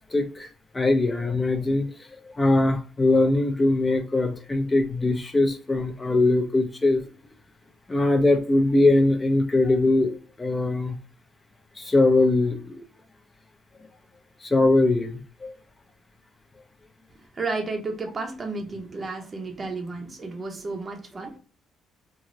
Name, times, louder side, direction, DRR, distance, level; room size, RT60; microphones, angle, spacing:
voice 1, 0.1-0.5 0.7-1.9 2.3-7.0 7.9-10.1 10.4-11.0 11.8-12.8 14.4-15.5, left 2 dB, 15° left, 0.4 m, -21 dB
voice 2, 17.2-21.4, right 3 dB, 25° right, 0.6 m, -32 dB
3.0 x 2.4 x 2.5 m
cardioid pair, 140°, 0 cm